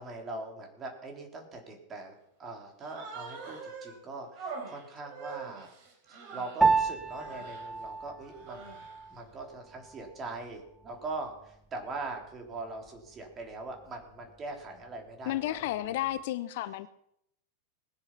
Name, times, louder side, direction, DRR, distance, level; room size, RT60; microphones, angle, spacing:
voice 1, 0.0-5.7 6.1-8.8 9.1-15.9, right 3 dB, 25° right, 2 dB, 3.6 m, -42 dB
Human voice, 2.8-4.0 4.3-6.7 7.1-7.7 8.3-9.0, right 4 dB, 45° right, 4.2 m, -44 dB
Piano, 6.6-16.2, right 4 dB, 5° right, 0.9 m, -34 dB
voice 2, 15.3-16.9, left 14 dB, 50° left, 14 dB, 0.6 m, -32 dB
20.0 x 7.9 x 5.9 m, 0.76 s
figure-of-eight pair, 90°, 0 cm